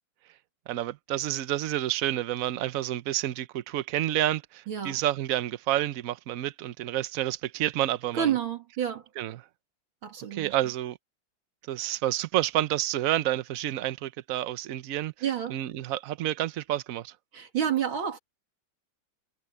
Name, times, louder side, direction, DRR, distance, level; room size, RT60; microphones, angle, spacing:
voice 1, 0.7-8.3 9.2-9.4 10.3-11.0 11.7-15.1 15.5-17.1, right 13 dB, 60° right, 0.9 m, -29 dB
voice 2, 4.7-5.0 8.1-9.0 10.0-10.6 15.2-15.6 17.3-18.2, right 9 dB, 85° right, 3.0 m, -29 dB
omnidirectional pair, 2.1 m